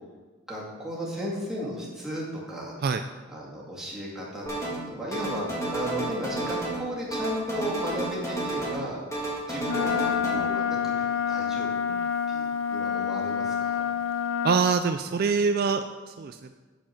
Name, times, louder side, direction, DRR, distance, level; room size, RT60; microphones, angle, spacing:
voice 1, 0.5-2.8 3.3-11.8 12.3-13.9, equal, 5° right, -6 dB, 2.1 m, -35 dB
sound 1, 4.5-4.9 5.1-6.8 7.1-8.8 9.1-10.4, right 2 dB, 15° left, 1.7 m, -31 dB
Wind instrument woodwind instrument, 9.6-14.6, left 7 dB, 70° left, 0.6 m, -28 dB
voice 2, 14.4-16.5, right 5 dB, 45° right, 8 dB, 0.3 m, -25 dB
7.4 x 7.1 x 5.9 m, 1.3 s
head